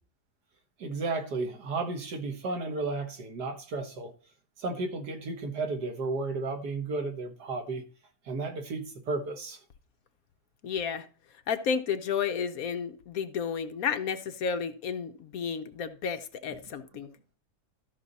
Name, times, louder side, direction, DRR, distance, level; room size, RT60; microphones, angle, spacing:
voice 1, 0.8-4.1 4.6-7.8 8.3-9.6, right 3 dB, 85° right, 2.1 m, -33 dB
voice 2, 10.6-11.0 11.5-17.1, left 6 dB, 65° left, 1.3 m, -32 dB
13.0 x 6.0 x 4.1 m
omnidirectional pair, 1.7 m